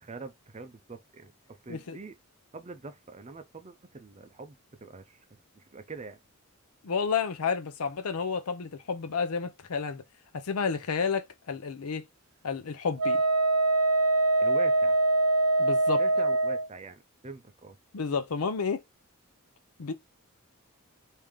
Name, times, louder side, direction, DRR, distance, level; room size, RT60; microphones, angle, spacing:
voice 1, 0.0-2.1 2.5-5.2 5.5-6.2 14.4-15.0 16.0-17.8, right 3 dB, 30° right, 0.5 m, -43 dB
voice 2, 6.8-10.0 10.3-12.0 12.4-13.2 15.6-16.0 17.9-18.8 19.8-19.9, left 5 dB, 80° left, 0.6 m, -31 dB
Wind instrument woodwind instrument, 13.0-16.7, right 2 dB, 80° right, 0.6 m, -23 dB
3.3 x 2.7 x 3.4 m
head